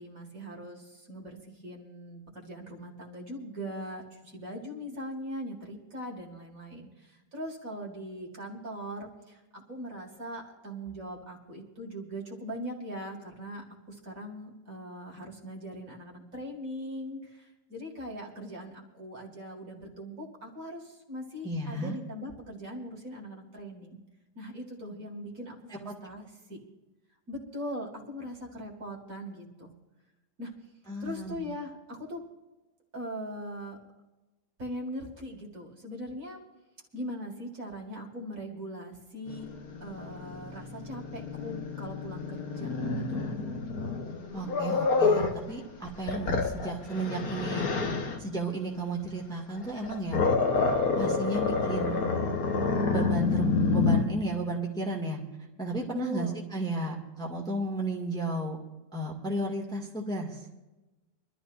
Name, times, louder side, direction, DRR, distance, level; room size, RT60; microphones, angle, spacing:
voice 1, 0.0-24.0 24.4-26.6 27.3-29.7 30.4-30.5 31.0-32.2 32.9-33.8 34.6-36.4 36.9-39.5 39.8-43.4 55.8-56.4, equal, 45° right, -1 dB, 2.5 m, -40 dB
voice 2, 21.4-22.0 25.9-26.0 30.9-31.5 44.3-47.9 48.2-50.2 51.0-52.2 52.8-55.2 55.6-58.6 58.9-60.6, right 2 dB, ahead, -2 dB, 1.9 m, -33 dB
Growling, 39.3-45.4 45.9-48.2 49.6-54.0, left 4 dB, 55° left, 1.5 m, -28 dB
25.0 x 12.5 x 2.6 m, 1.1 s
omnidirectional pair, 2.0 m